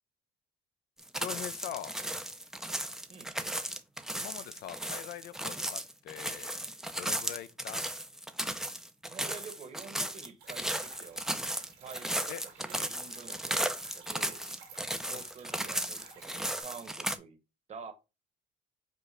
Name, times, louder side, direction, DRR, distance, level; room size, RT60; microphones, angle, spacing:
sound 1, 1.0-17.2, right 1 dB, 5° right, 0.4 m, -35 dB
voice 1, 1.1-1.9 4.1-6.5 7.0-7.8 12.3-12.4 15.1-15.2, left 12 dB, 70° left, 0.5 m, -42 dB
voice 2, 9.0-11.2 11.8-12.3 12.6-14.5 15.0-17.4 17.7-17.9, right 6 dB, 40° right, 1.0 m, -48 dB
sound 2, 10.4-16.6, right 6 dB, 85° right, 2.0 m, -54 dB
5.3 x 2.0 x 4.8 m
cardioid pair, 110°, 17 cm